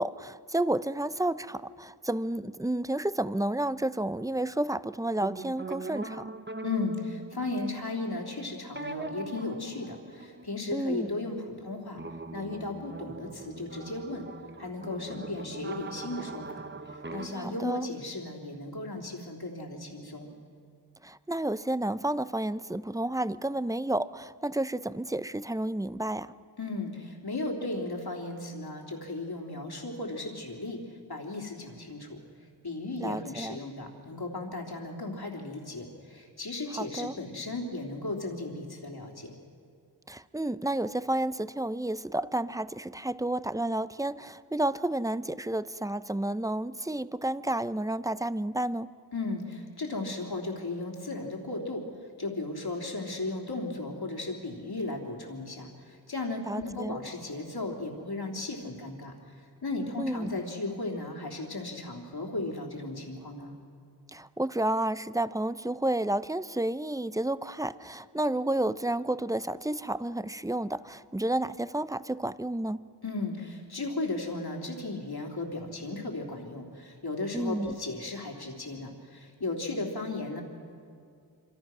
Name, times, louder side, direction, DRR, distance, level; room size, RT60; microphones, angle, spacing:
voice 1, 0.0-6.3 10.7-11.1 17.4-17.9 21.0-26.3 33.0-33.6 36.7-37.2 40.1-48.9 56.4-57.0 60.0-60.4 64.1-72.8 77.3-77.7, right 1 dB, 10° right, 15 dB, 0.5 m, -31 dB
sound 1, 5.2-11.2 11.9-17.6, right 3 dB, 25° right, 0.9 m, -41 dB
voice 2, 6.6-12.0 12.3-14.2 14.6-16.6 17.1-20.3 26.6-30.8 31.1-32.2 32.6-39.3 49.1-51.8 52.2-59.1 59.6-63.6 73.0-80.4, left 2 dB, 65° left, 0 dB, 3.5 m, -35 dB
26.0 x 26.0 x 6.1 m, 2.3 s
wide cardioid pair, 60°, 41 cm